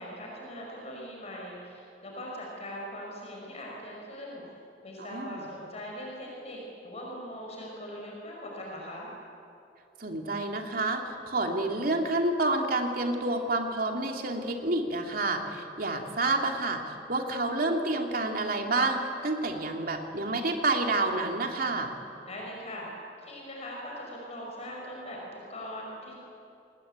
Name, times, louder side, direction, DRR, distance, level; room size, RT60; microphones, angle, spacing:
voice 1, 0.0-4.5 4.8-9.1 22.3-22.9 23.2-26.1, equal, 40° left, -2 dB, 5.6 m, -41 dB
voice 2, 5.0-5.4 10.0-21.9, right 2 dB, 55° right, 3 dB, 2.9 m, -29 dB
29.0 x 21.0 x 9.0 m, 2.6 s
head